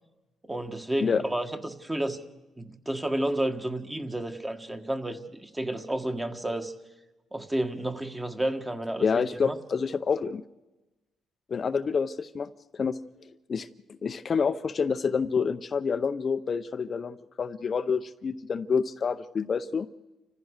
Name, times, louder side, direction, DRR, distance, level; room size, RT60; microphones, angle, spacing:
voice 1, 0.4-2.2 2.6-6.7 7.3-9.6, right 1 dB, 15° right, 6 dB, 1.7 m, -31 dB
voice 2, 9.0-10.4 11.5-13.0 13.5-19.9, left 5 dB, 45° left, 10 dB, 0.6 m, -28 dB
29.0 x 15.0 x 6.5 m, 1.1 s
cardioid pair, 90°, 0 cm